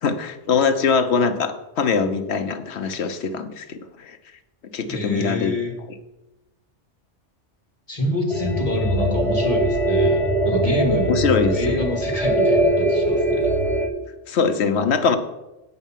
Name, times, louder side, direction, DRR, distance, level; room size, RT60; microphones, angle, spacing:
voice 1, 0.0-4.2 4.7-5.5 11.1-11.6 14.3-15.2, left 5 dB, 65° left, 8 dB, 1.0 m, -22 dB
voice 2, 4.9-5.7 7.9-11.1 11.5-13.5, equal, 30° left, 0 dB, 2.1 m, -26 dB
sound 1, 8.3-13.9, right 1 dB, ahead, 0.8 m, -21 dB
9.0 x 5.5 x 7.3 m, 0.99 s
omnidirectional pair, 1.2 m